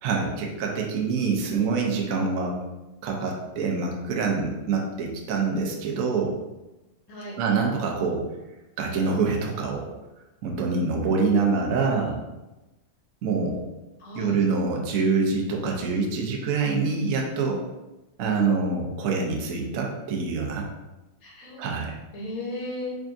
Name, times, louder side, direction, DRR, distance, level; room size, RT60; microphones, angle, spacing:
voice 1, 0.0-2.6 3.0-6.3 7.4-8.3 8.8-9.9 10.4-12.2 13.2-13.6 14.1-17.6 18.2-20.7 21.6-22.0, right 4 dB, 75° right, 0 dB, 0.7 m, -25 dB
voice 2, 14.0-14.4 21.2-21.6 22.1-22.9, left 1 dB, 50° left, -3 dB, 1.1 m, -35 dB
3.6 x 3.5 x 2.5 m, 1.0 s
omnidirectional pair, 2.2 m